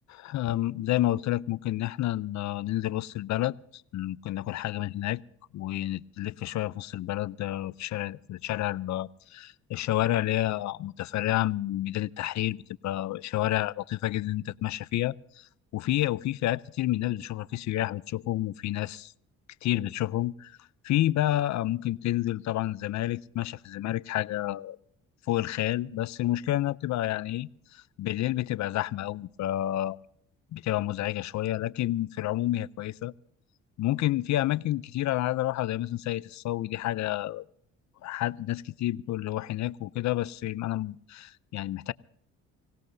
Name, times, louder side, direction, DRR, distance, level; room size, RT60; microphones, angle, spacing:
voice 1, 0.1-5.2 5.5-12.6 12.8-19.1 19.6-20.6 20.8-24.8 25.3-30.0 30.5-33.1 33.8-37.4 38.0-41.9, left 14 dB, 65° left, 18 dB, 0.5 m, -29 dB
25.5 x 17.0 x 2.7 m, 0.68 s
cardioid pair, 90°, 31 cm